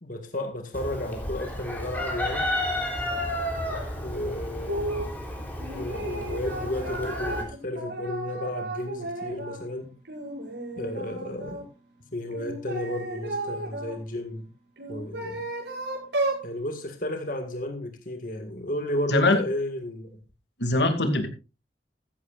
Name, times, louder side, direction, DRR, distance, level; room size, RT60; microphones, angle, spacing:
voice 1, 0.0-2.5 4.0-4.9 5.7-9.9 10.8-11.7 12.1-14.5 14.9-15.4 16.4-20.1, left 1 dB, 50° left, 1.9 m, -33 dB
Chicken rooster, 0.7-7.4, left 1 dB, 10° left, 3.5 m, -32 dB
sound 1, 4.7-5.1 5.6-9.6 10.0-11.6 12.3-13.9 14.8-16.5, right 2 dB, 85° right, 6.3 m, -33 dB
voice 2, 19.1-19.4 20.6-21.3, left 2 dB, 85° left, 2.5 m, -22 dB
14.5 x 14.5 x 2.5 m
head